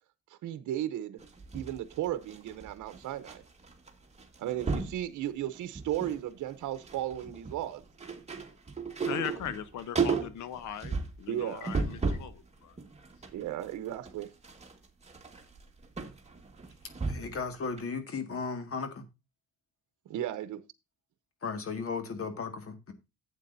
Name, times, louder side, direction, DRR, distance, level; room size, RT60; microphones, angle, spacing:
voice 1, 0.3-1.2 1.5-3.4 4.4-7.8 11.3-11.9 13.3-14.3 20.1-20.6, right 12 dB, 80° right, 0.8 m, -35 dB
sound 1, 1.2-3.4 3.6-3.9 4.2-5.0 5.5-6.2 6.5-12.4 12.8-17.4 17.8-17.9, right 4 dB, 20° right, 1.9 m, -34 dB
voice 2, 9.0-12.8, left 10 dB, 75° left, 1.0 m, -39 dB
voice 3, 17.1-19.0 21.4-22.9, left 5 dB, 45° left, 2.0 m, -35 dB
12.0 x 8.2 x 2.6 m
cardioid pair, 90°, 30 cm